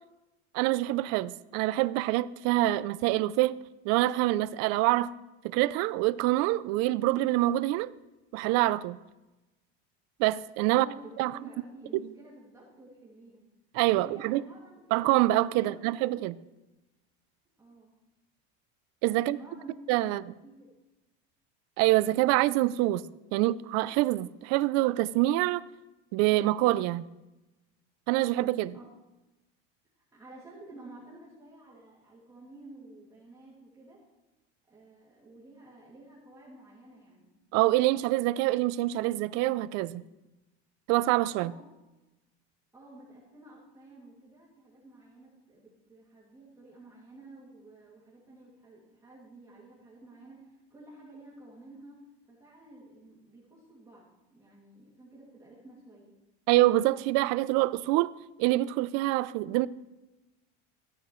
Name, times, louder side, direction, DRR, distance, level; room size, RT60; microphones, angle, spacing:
voice 1, 0.5-3.5 3.8-5.1 5.4-7.9 8.3-9.0 10.2-10.9 11.2-11.3 11.9-12.0 13.7-14.4 14.9-16.4 19.0-19.4 19.9-20.2 21.8-23.0 23.3-25.6 26.1-27.1 28.1-28.8 37.5-40.0 40.9-41.5 56.5-58.1 58.4-59.7, right 17 dB, 55° right, 0.4 m, -25 dB
voice 2, 10.7-13.5 13.9-14.8 15.5-16.5 17.6-17.9 19.2-19.7 20.0-20.8 28.7-28.8 29.9-34.0 34.7-37.3 41.3-41.6 42.7-52.0 52.3-56.1, right 2 dB, 10° right, 2.3 m, -52 dB
13.5 x 8.9 x 3.1 m
cardioid pair, 145°, 31 cm